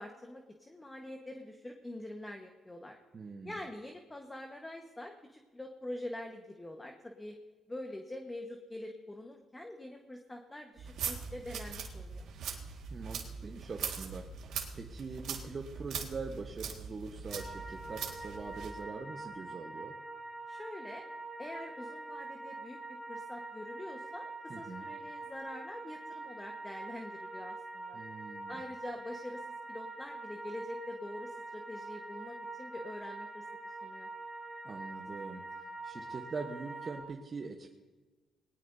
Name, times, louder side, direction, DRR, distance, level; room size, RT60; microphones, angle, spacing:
voice 1, 0.0-3.0 3.4-7.3 7.7-12.3 20.5-21.0 21.4-22.8 23.1-28.0 28.5-29.4 29.7-34.1, left 1 dB, 15° left, 3 dB, 1.4 m, -45 dB
voice 2, 3.1-3.5 12.9-19.9 24.5-24.9 27.9-28.6 34.6-37.7, right 4 dB, 40° right, 2 dB, 1.2 m, -43 dB
sound 1, 10.8-18.8, right 6 dB, 80° right, 1.9 m, -41 dB
sound 2, 17.3-37.0, right 2 dB, ahead, 3.7 m, -45 dB
20.0 x 18.5 x 2.8 m, 1.3 s
cardioid pair, 90°, 0 cm